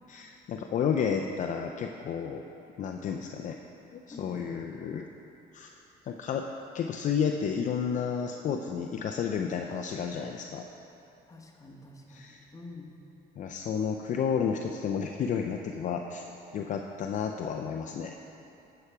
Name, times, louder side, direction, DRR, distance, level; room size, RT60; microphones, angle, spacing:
voice 1, 0.1-2.4 2.8-3.6 3.9-5.1 5.5-5.7 6.0-6.5 6.7-10.6 12.1-12.4 13.4-16.2 16.5-18.2, left 7 dB, 50° left, 3 dB, 0.5 m, -31 dB
voice 2, 4.1-4.6 11.3-12.9, left 3 dB, 20° left, -1 dB, 1.3 m, -47 dB
9.7 x 7.0 x 4.7 m, 2.9 s
cardioid pair, 110°, 17 cm